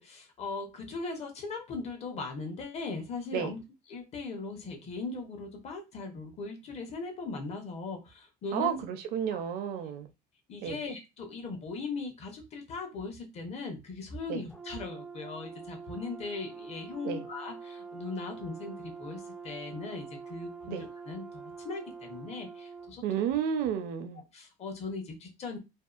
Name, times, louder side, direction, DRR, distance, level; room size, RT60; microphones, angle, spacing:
voice 1, 0.0-3.6 3.9-8.8 9.3-9.4 10.5-23.0 24.3-25.6, left 3 dB, 40° left, 0.8 m, -39 dB
voice 2, 8.5-10.1 10.6-10.8 14.3-14.4 17.0-17.2 20.7-20.9 23.0-24.2, right 8 dB, 70° right, 0.6 m, -31 dB
Brass instrument, 14.5-22.9, right 5 dB, ahead, 0.4 m, -45 dB
2.7 x 2.4 x 2.4 m
cardioid pair, 140°, 16 cm